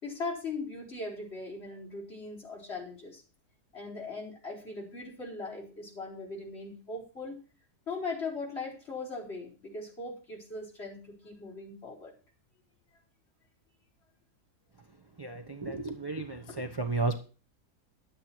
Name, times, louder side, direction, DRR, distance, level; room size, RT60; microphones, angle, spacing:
voice 1, 0.0-3.2 3.7-7.4 7.9-12.1 16.5-16.6, left 3 dB, 40° left, -2 dB, 4.7 m, -39 dB
voice 2, 15.2-17.2, right 3 dB, 20° right, 5 dB, 0.6 m, -33 dB
11.5 x 8.8 x 4.5 m, 0.35 s
omnidirectional pair, 1.8 m